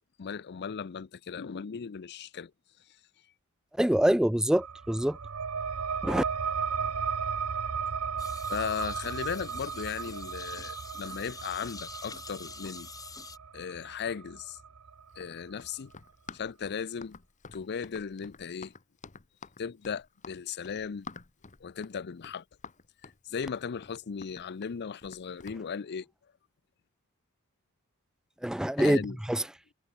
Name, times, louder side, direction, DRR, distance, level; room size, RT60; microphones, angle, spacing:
voice 1, 0.2-2.5 8.5-12.9 13.5-14.6 15.2-15.9 16.3-17.2 17.5-18.7 19.6-21.1 21.6-22.4 23.3-26.1 28.8-29.2, left 6 dB, 50° left, 0.5 m, -36 dB
voice 2, 3.8-5.2 6.0-6.2 28.4-29.0 29.3-29.5, right 1 dB, 5° right, 0.3 m, -25 dB
sound 1, 4.5-15.7, right 6 dB, 70° right, 1.0 m, -35 dB
sound 2, 8.2-13.4, left 5 dB, 15° left, 1.0 m, -46 dB
Run, 15.1-25.6, left 4 dB, 35° left, 1.1 m, -49 dB
head